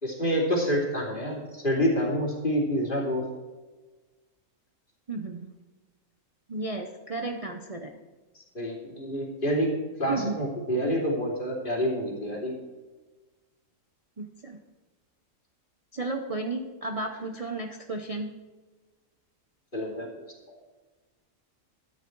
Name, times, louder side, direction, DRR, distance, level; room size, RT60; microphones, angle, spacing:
voice 1, 0.0-3.2 8.3-9.7 10.0-12.5 19.7-20.6, equal, 40° left, -2 dB, 3.2 m, -28 dB
voice 2, 5.1-5.5 6.5-8.0 10.1-10.4 14.2-14.6 15.9-18.3, right 3 dB, 30° right, 3 dB, 0.8 m, -33 dB
13.0 x 9.7 x 4.6 m, 1.3 s
omnidirectional pair, 1.4 m